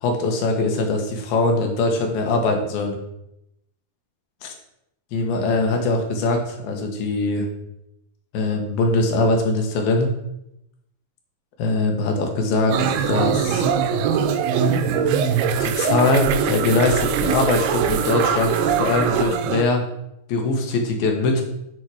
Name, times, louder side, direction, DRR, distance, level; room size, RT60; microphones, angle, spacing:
voice 1, 0.0-3.0 4.4-4.5 5.1-7.5 8.3-10.1 11.6-12.8 13.1-13.7 15.6-19.8 20.3-21.4, left 2 dB, 75° left, 3 dB, 3.2 m, -22 dB
sound 1, 12.7-19.6, right 7 dB, 85° right, 2.7 m, -22 dB
13.0 x 4.4 x 4.8 m, 0.82 s
omnidirectional pair, 4.4 m